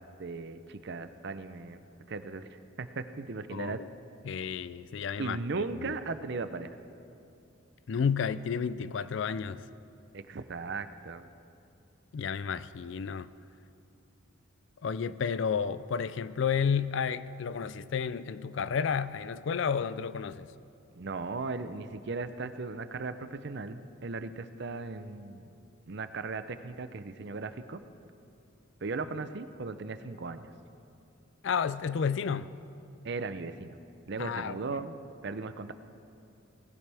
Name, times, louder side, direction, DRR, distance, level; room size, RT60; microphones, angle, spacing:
voice 1, 0.2-1.8 2.1-3.8 5.2-6.8 10.1-11.2 20.9-25.5 25.9-27.8 28.8-30.5 33.0-33.8 34.1-34.9 35.2-35.7, right 3 dB, 55° right, 11 dB, 0.6 m, -37 dB
voice 2, 3.5-3.9 4.2-5.4 7.9-9.6 12.1-13.3 14.8-20.5 31.4-32.5 34.2-34.8, left 6 dB, 60° left, 15 dB, 0.4 m, -31 dB
19.5 x 15.0 x 3.4 m, 2.6 s
head